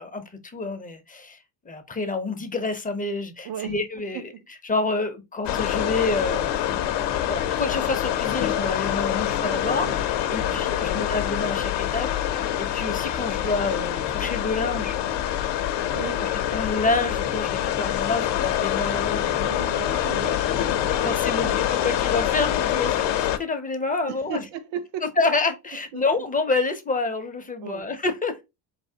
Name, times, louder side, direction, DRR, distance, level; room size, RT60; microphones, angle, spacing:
voice 1, 0.0-1.4 1.7-4.3 4.6-6.7 7.0-9.9 10.3-15.0 16.2-19.4 20.9-24.4 25.2-28.4, left 3 dB, 20° left, 0.6 m, -28 dB
voice 2, 3.4-4.5 9.8-10.1 10.4-11.2 15.9-16.3 19.4-21.1 21.4-21.9 24.1-25.1 25.9-26.0 27.6-27.9, right 8 dB, 75° right, 0.7 m, -37 dB
sound 1, 5.4-23.4, left 11 dB, 70° left, 0.7 m, -25 dB
4.1 x 3.3 x 2.7 m
cardioid pair, 130°, 44 cm